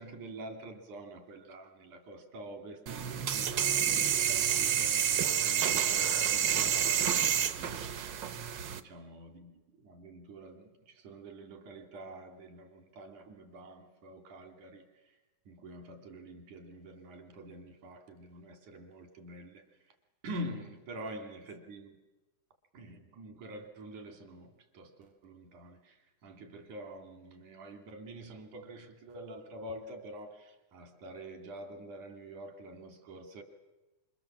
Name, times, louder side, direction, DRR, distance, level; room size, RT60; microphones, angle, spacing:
voice 1, 0.0-8.2 8.7-15.2 15.5-19.9 20.2-22.0 22.7-33.4, right 1 dB, 85° right, 4.1 m, -47 dB
sound 1, 2.9-8.8, right 9 dB, 65° right, 1.1 m, -29 dB
27.0 x 27.0 x 7.4 m
omnidirectional pair, 3.4 m